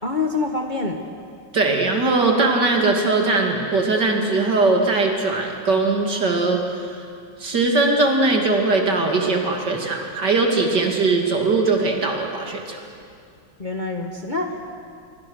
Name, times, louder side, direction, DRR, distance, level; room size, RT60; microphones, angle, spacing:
voice 1, 0.0-1.0 13.6-14.7, left 3 dB, 25° left, 3 dB, 1.2 m, -26 dB
voice 2, 1.5-6.8 7.4-12.8, right 3 dB, 55° right, 2 dB, 3.2 m, -20 dB
27.0 x 23.5 x 6.5 m, 2.3 s
omnidirectional pair, 2.2 m